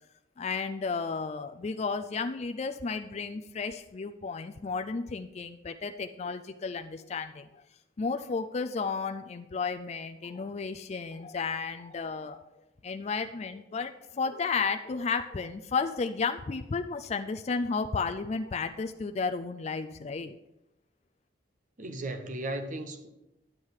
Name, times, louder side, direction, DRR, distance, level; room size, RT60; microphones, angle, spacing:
voice 1, 0.4-7.6 8.0-12.4 12.8-20.3, left 4 dB, 35° left, 6 dB, 0.4 m, -33 dB
voice 2, 21.8-23.1, right 1 dB, 45° right, 7 dB, 1.0 m, -36 dB
10.5 x 7.4 x 4.7 m, 0.93 s
head